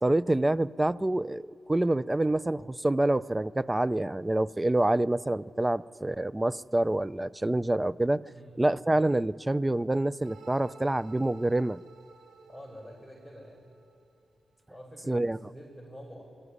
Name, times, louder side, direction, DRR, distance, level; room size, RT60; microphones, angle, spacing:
voice 1, 0.0-1.4 1.7-8.2 8.6-11.8 15.1-15.4, right 1 dB, 20° right, 19 dB, 0.5 m, -27 dB
sound 1, 10.2-14.2, right 4 dB, 90° right, 1.6 m, -54 dB
voice 2, 12.5-13.7 14.7-16.2, equal, ahead, -4 dB, 5.2 m, -47 dB
22.0 x 13.0 x 9.9 m, 2.4 s
cardioid pair, 55°, 0 cm